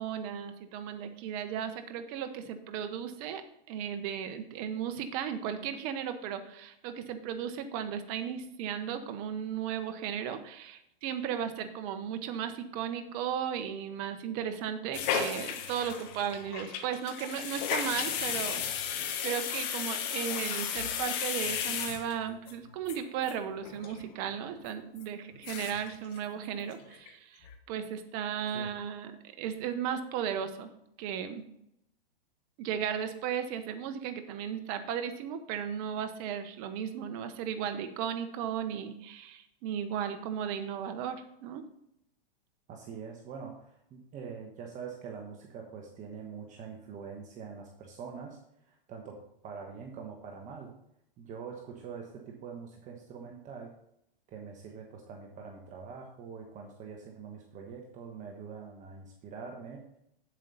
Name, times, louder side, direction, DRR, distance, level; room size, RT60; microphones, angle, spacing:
voice 1, 0.0-3.4 3.7-18.9 19.2-29.1 29.4-30.7 31.0-31.4 32.6-41.6, right 8 dB, 40° right, 8 dB, 1.1 m, -35 dB
sound 1, 14.9-22.5 22.9-23.0 23.2-23.3 23.6-24.0 24.3-24.4 25.0-25.1 25.3-25.9 26.2-26.3 26.6-27.1 27.4-27.6, left 8 dB, 45° left, 1.3 m, -34 dB
voice 2, 42.7-48.4 48.6-50.7 51.2-53.7 54.3-59.8, right 6 dB, 25° right, 1 dB, 1.2 m, -44 dB
8.1 x 7.6 x 4.1 m, 0.77 s
hypercardioid pair, 135°, 29 cm